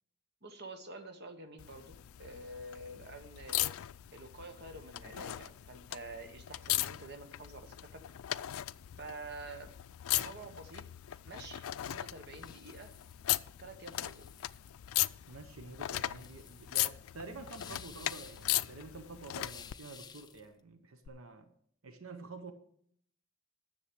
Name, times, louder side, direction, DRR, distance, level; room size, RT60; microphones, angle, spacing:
voice 1, 0.4-3.7 4.1-8.0 9.0-9.7 10.1-10.8 11.3-12.9 13.6-14.3, right 2 dB, 50° right, 6 dB, 1.2 m, -48 dB
sound 1, 1.6-19.8 21.1-21.2, left 15 dB, 85° left, 0.3 m, -38 dB
sound 2, 12.3-20.5, left 7 dB, 20° left, 0.4 m, -55 dB
voice 2, 15.3-21.5 21.8-22.5, right 3 dB, 85° right, 8 dB, 1.0 m, -48 dB
10.0 x 7.2 x 6.2 m, 0.66 s
head